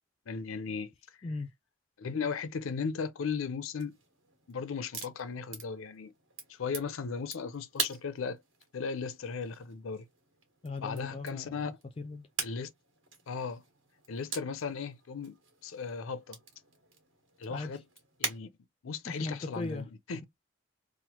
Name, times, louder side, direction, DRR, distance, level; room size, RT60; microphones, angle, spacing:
voice 1, 0.3-0.9 2.0-4.0 4.5-6.1 6.5-8.4 8.7-10.1 10.8-11.7 12.4-12.7 13.3-13.6 14.1-16.4 17.4-17.8 18.2-18.5 18.8-20.2, left 5 dB, 90° left, 0.5 m, -36 dB
sound 1, 3.8-18.4, right 5 dB, 80° right, 1.4 m, -44 dB
voice 2, 10.6-12.3 17.5-17.8 19.0-19.9, left 3 dB, 30° left, 0.3 m, -38 dB
3.1 x 2.1 x 2.9 m
head